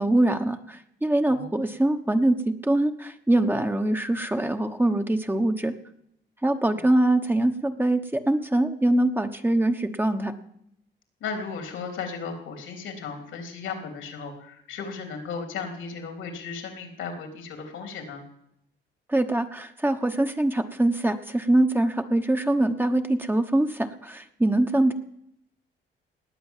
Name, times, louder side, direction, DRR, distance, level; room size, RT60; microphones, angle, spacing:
voice 1, 0.0-5.7 6.4-10.3 19.1-24.9, right 1 dB, 10° right, 6 dB, 1.1 m, -23 dB
voice 2, 11.2-18.2, left 5 dB, 85° left, 4 dB, 3.4 m, -35 dB
19.0 x 8.2 x 7.4 m, 0.76 s
cardioid pair, 90°, 20 cm